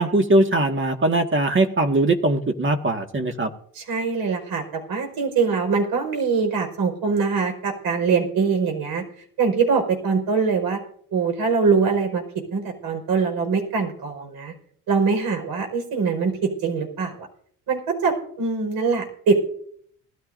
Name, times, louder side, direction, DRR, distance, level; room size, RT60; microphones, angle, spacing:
voice 1, 0.0-3.5, right 2 dB, 30° right, 5 dB, 1.8 m, -20 dB
voice 2, 3.7-9.1 9.4-10.8 11.1-14.5 14.9-17.2 17.7-19.4, right 5 dB, 70° right, 4 dB, 5.2 m, -23 dB
20.0 x 14.0 x 2.7 m, 0.62 s
supercardioid pair, 65°, 38 cm